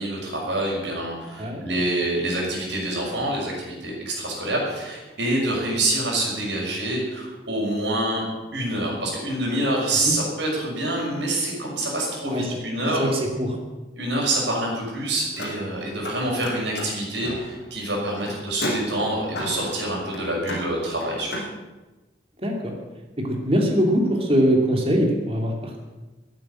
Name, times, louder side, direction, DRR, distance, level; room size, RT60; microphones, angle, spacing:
voice 1, 0.0-8.2 8.5-13.1 14.0-21.4, right 1 dB, 70° right, -2 dB, 6.1 m, -26 dB
voice 2, 13.0-13.6 22.4-22.7 23.2-25.8, equal, 30° right, 1 dB, 2.6 m, -22 dB
Car, 15.2-16.1 16.4-21.5, equal, 60° left, 5.7 m, -34 dB
14.5 x 9.2 x 8.8 m, 1.2 s
head